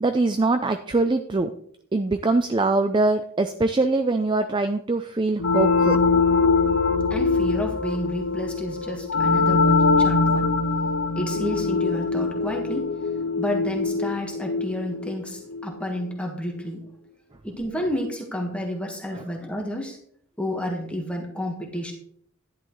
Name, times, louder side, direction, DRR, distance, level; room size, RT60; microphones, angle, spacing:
voice 1, 0.0-1.5 1.9-6.0 19.1-19.2, right 3 dB, 20° right, 8 dB, 0.4 m, -23 dB
sound 1, 5.4-15.8, left 4 dB, 80° left, 0.7 m, -22 dB
voice 2, 7.1-10.5 11.2-12.9 13.4-16.8 17.4-20.0 20.4-21.9, equal, 5° left, 1 dB, 1.5 m, -30 dB
11.0 x 10.5 x 3.1 m, 0.64 s
head